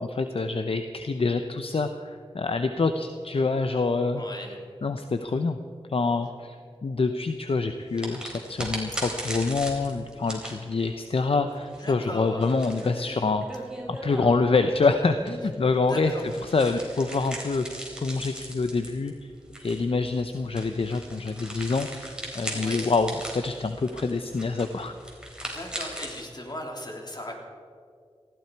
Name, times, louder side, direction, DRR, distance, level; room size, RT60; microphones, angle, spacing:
voice 1, 0.0-4.2 4.8-5.6 5.9-6.6 6.8-16.1 16.4-17.7 18.0-19.1 19.6-25.0, left 3 dB, 65° left, 8 dB, 0.7 m, -26 dB
voice 2, 4.1-4.5 11.8-12.5 15.9-16.4 22.5-22.9 25.4-27.3, left 1 dB, 45° left, 0 dB, 3.2 m, -37 dB
sound 1, 7.9-14.6 15.2-26.2, right 1 dB, 10° right, 3.9 m, -38 dB
19.0 x 15.0 x 4.7 m, 2.2 s
wide cardioid pair, 60°, 10 cm